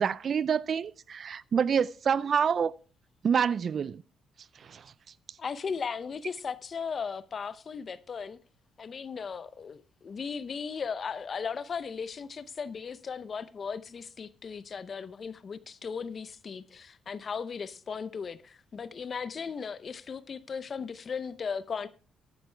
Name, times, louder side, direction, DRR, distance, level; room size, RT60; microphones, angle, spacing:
voice 1, 0.0-2.7 3.2-4.0 4.6-4.8, right 7 dB, 50° right, 0.4 m, -27 dB
voice 2, 5.4-8.4 8.8-21.9, left 6 dB, 45° left, 0.6 m, -37 dB
10.5 x 9.9 x 3.4 m
cardioid pair, 90°, 0 cm